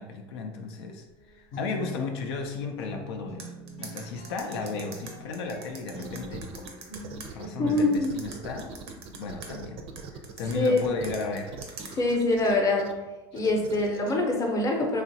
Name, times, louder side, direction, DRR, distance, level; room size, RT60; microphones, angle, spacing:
voice 1, 0.0-3.5 3.8-6.7 7.3-8.7 9.2-11.5 13.3-13.4, left 4 dB, 80° left, 3 dB, 0.4 m, -35 dB
sound 1, 1.1-8.0, left 2 dB, 60° left, 0.7 m, -41 dB
sound 2, 3.4-7.3 7.8-9.5 10.0-11.9, right 5 dB, 90° right, 0.6 m, -43 dB
sound 3, 5.9-6.7 6.9-10.5 10.8-12.9 13.3-14.1, right 6 dB, 45° right, 0.4 m, -41 dB
voice 2, 7.6-8.1 10.5-10.8 11.9-12.9 13.3-15.0, left 2 dB, 25° left, 1 dB, 0.7 m, -24 dB
3.0 x 2.4 x 2.6 m, 1.1 s
supercardioid pair, 105°, 13 cm